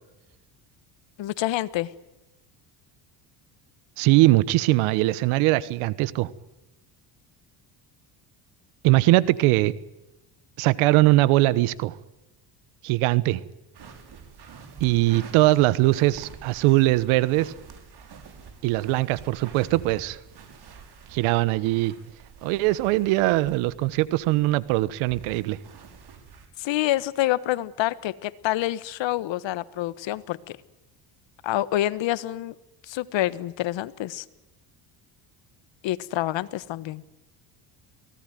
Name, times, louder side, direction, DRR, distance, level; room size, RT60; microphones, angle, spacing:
voice 1, 1.2-1.9 26.6-30.6 31.4-32.5 32.8-34.2 35.8-37.0, left 15 dB, 65° left, 17 dB, 1.4 m, -27 dB
voice 2, 4.0-6.3 8.8-9.7 10.6-12.0 12.8-13.4 14.8-17.5 18.6-20.2 21.1-21.9 22.4-25.6, right 18 dB, 85° right, 19 dB, 1.3 m, -21 dB
sound 1, 13.7-26.5, right 6 dB, 50° right, 5.8 m, -47 dB
23.5 x 18.0 x 9.3 m, 0.96 s
supercardioid pair, 85°, 48 cm